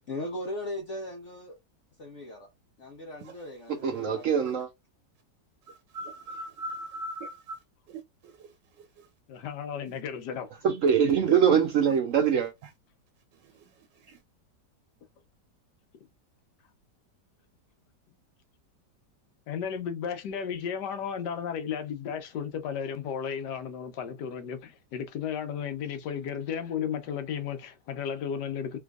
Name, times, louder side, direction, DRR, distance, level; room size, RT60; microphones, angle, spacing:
voice 1, 0.1-1.5 2.0-2.5 2.8-4.5, left 1 dB, 55° left, 0.9 m, -38 dB
voice 2, 3.7-4.7 10.6-12.5, right 7 dB, 70° right, 0.7 m, -23 dB
voice 3, 5.7-7.6 8.2-8.3 9.0-9.1 14.1-14.2, equal, 90° right, 1.4 m, -39 dB
voice 4, 9.3-10.5 19.5-28.8, left 7 dB, 75° left, 1.3 m, -34 dB
3.4 x 3.0 x 2.3 m
omnidirectional pair, 1.9 m